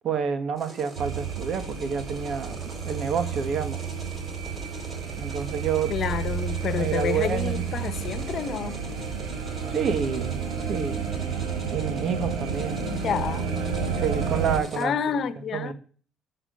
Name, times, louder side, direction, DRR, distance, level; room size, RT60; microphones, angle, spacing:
voice 1, 0.0-3.8 5.2-6.0 6.8-7.8 9.7-10.4 10.7-11.1 11.7-12.8 13.9-14.9 15.5-15.7, right 7 dB, 55° right, 2.0 m, -28 dB
sound 1, 0.6-14.8, right 1 dB, 35° right, 3.7 m, -43 dB
sound 2, 1.0-14.6, right 6 dB, 85° right, 4.1 m, -31 dB
voice 2, 5.9-8.8 12.8-13.5 14.8-15.7, left 8 dB, 55° left, 1.4 m, -29 dB
13.5 x 8.7 x 5.5 m
supercardioid pair, 85°, 0 cm